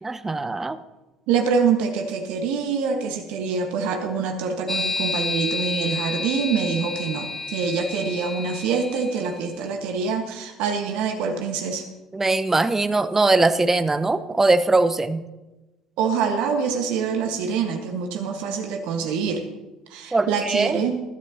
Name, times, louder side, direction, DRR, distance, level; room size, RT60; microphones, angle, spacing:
voice 1, 0.0-0.8 12.1-15.2 20.1-20.8, right 3 dB, 15° right, 11 dB, 0.9 m, -21 dB
voice 2, 1.3-11.9 16.0-19.5 19.9-21.0, right 6 dB, 60° right, 4 dB, 1.6 m, -25 dB
sound 1, 4.7-9.4, left 3 dB, 15° left, 0.4 m, -30 dB
21.0 x 12.5 x 2.9 m, 1.1 s
figure-of-eight pair, 55°, 2 cm